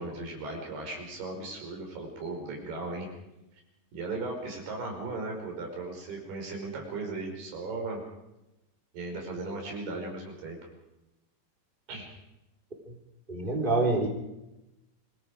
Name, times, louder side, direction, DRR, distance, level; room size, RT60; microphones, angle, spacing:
voice 1, 0.0-3.1 3.9-8.0 8.9-10.6 11.9-12.1, right 3 dB, 85° right, 2 dB, 7.3 m, -37 dB
voice 2, 13.3-14.1, right 2 dB, 15° right, 0 dB, 3.7 m, -26 dB
27.0 x 21.5 x 5.1 m, 0.94 s
omnidirectional pair, 4.5 m